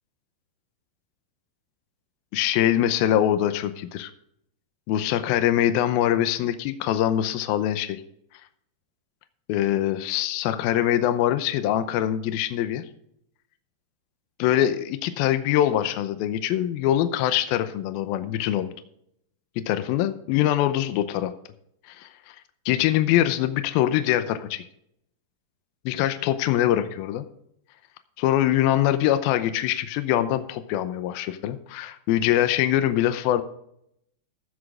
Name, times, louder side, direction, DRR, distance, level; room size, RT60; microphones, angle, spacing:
voice 1, 2.3-4.1 4.9-8.0 9.5-12.8 14.4-18.7 19.7-21.3 21.9-22.1 22.7-24.6 25.9-27.3 28.2-33.4, left 12 dB, 75° left, 10 dB, 2.4 m, -23 dB
14.5 x 6.2 x 4.8 m, 0.71 s
omnidirectional pair, 4.7 m